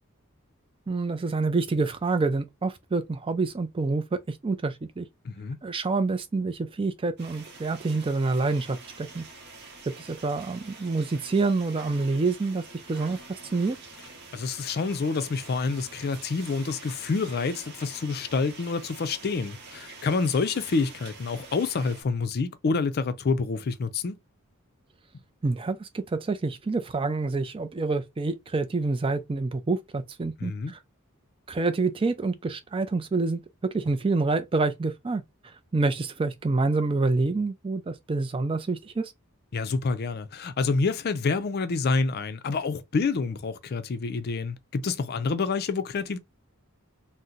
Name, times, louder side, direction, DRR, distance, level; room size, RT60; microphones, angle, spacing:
voice 1, 0.9-5.1 5.6-9.3 10.0-13.2 13.5-13.8 25.4-30.8 31.5-33.4 33.7-35.2 35.7-39.1, right 3 dB, 25° right, 0.4 m, -27 dB
voice 2, 5.2-5.6 14.3-24.2 30.4-30.7 39.5-46.2, left 4 dB, 45° left, 0.4 m, -28 dB
sound 1, 7.2-22.0, right 3 dB, 50° right, 0.9 m, -46 dB
2.8 x 2.1 x 3.7 m
head